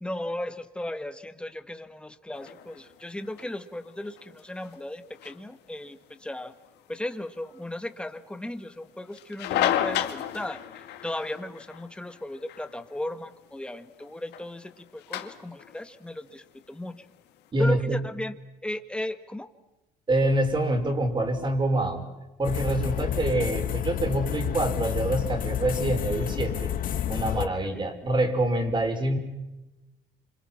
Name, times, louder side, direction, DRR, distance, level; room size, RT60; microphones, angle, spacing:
voice 1, 0.0-6.5 6.9-10.6 11.0-17.1 17.6-18.4 18.6-19.5 27.4-27.8, left 1 dB, 5° left, 9 dB, 1.8 m, -36 dB
sound 1, 2.3-17.5, left 11 dB, 80° left, 2.1 m, -35 dB
voice 2, 17.5-18.0 20.1-22.0 22.4-26.7 27.1-29.2, right 1 dB, 25° right, 5 dB, 5.1 m, -26 dB
sound 2, 22.4-27.5, left 10 dB, 55° left, 1.2 m, -30 dB
27.5 x 26.5 x 5.9 m, 1.0 s
cardioid pair, 110°, 17 cm